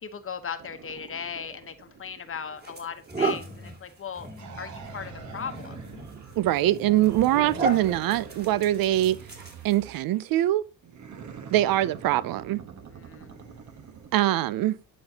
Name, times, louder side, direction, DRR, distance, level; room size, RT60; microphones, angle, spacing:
voice 1, 0.0-4.3 4.6-5.9 12.9-13.9, left 7 dB, 35° left, 1.1 m, -38 dB
sound 1, 0.6-3.4 4.3-6.6 7.0-10.3 10.8-14.2, right 6 dB, 55° right, 1.2 m, -45 dB
sound 2, 1.8-2.0 2.6-10.0, right 2 dB, 25° right, 2.3 m, -35 dB
voice 2, 6.4-9.2 9.6-10.6 11.5-12.6 14.1-14.8, right 14 dB, 75° right, 0.5 m, -23 dB
10.0 x 4.3 x 2.8 m
cardioid pair, 90°, 35 cm